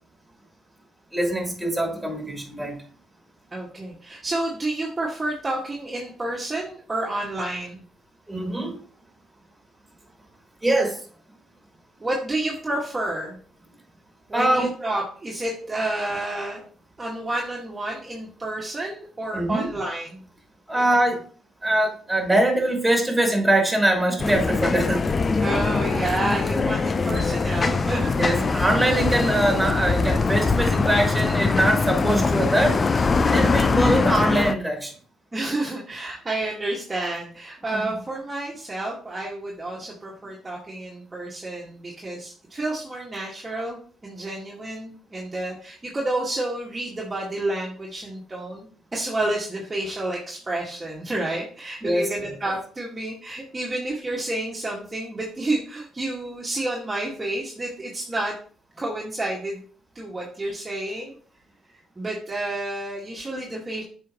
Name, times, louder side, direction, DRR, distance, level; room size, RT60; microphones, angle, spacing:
voice 1, 1.1-2.8 8.3-8.8 10.6-11.0 14.3-14.7 19.3-19.7 20.7-21.2 21.6-25.0 28.1-32.8 33.3-34.9 37.7-37.8 51.8-52.1, right 1 dB, 10° right, 1 dB, 3.1 m, -22 dB
voice 2, 3.5-7.8 12.0-13.4 14.3-16.6 17.0-20.2 25.4-28.3 35.3-48.7 48.9-58.3 58.8-59.6 60.0-61.2 62.0-63.8, right 2 dB, 25° right, -4 dB, 1.8 m, -30 dB
sound 1, 24.2-34.5, left 4 dB, 40° left, 0.6 m, -22 dB
7.4 x 5.1 x 3.0 m, 0.44 s
supercardioid pair, 55°, 0 cm